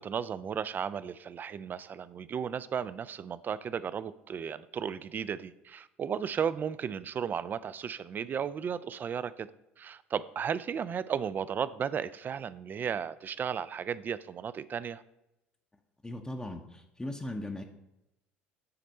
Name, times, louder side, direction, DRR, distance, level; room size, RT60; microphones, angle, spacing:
voice 1, 0.0-9.5 9.8-15.0, right 7 dB, 30° right, 16 dB, 0.4 m, -34 dB
voice 2, 16.0-17.6, left 1 dB, 10° left, 3 dB, 0.7 m, -38 dB
9.0 x 4.3 x 5.4 m, 0.90 s
figure-of-eight pair, 65°, 6 cm